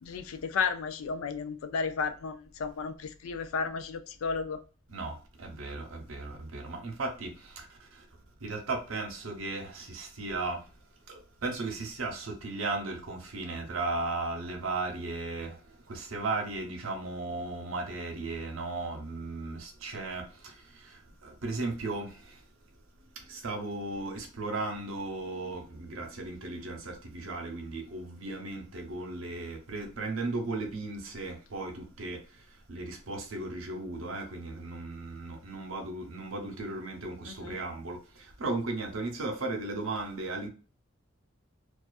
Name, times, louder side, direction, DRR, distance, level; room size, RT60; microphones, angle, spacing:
voice 1, 0.0-4.6 37.3-37.6, left 5 dB, 80° left, 0.4 m, -33 dB
voice 2, 4.9-10.7 11.1-22.5 23.1-40.5, right 2 dB, 75° right, 0.7 m, -36 dB
2.4 x 2.4 x 2.3 m
head